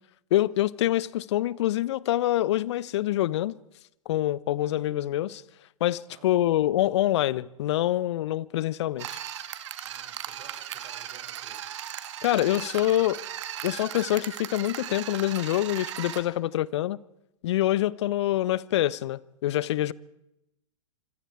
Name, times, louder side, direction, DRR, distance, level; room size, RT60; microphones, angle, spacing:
voice 1, 0.3-3.6 4.1-5.4 5.8-9.2 12.2-13.2 13.6-17.0 17.4-19.9, left 14 dB, 55° left, 0.9 m, -26 dB
sound 1, 9.0-16.2, right 11 dB, 60° right, 2.4 m, -37 dB
voice 2, 9.8-12.0, right 8 dB, 40° right, 5.4 m, -55 dB
26.5 x 25.5 x 4.8 m
figure-of-eight pair, 110°, 17 cm